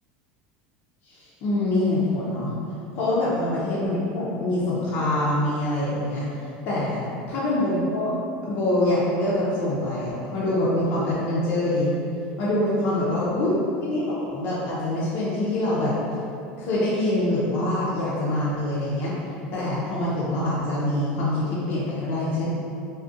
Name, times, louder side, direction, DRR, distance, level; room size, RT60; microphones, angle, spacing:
voice 1, 1.1-2.5 2.9-6.3 6.6-8.1 8.5-11.9 12.4-13.5 13.8-16.0 16.6-19.1 19.5-22.5, left 1 dB, 45° left, -8 dB, 0.4 m, -25 dB
2.4 x 2.1 x 2.6 m, 2.7 s
supercardioid pair, 150°, 4 cm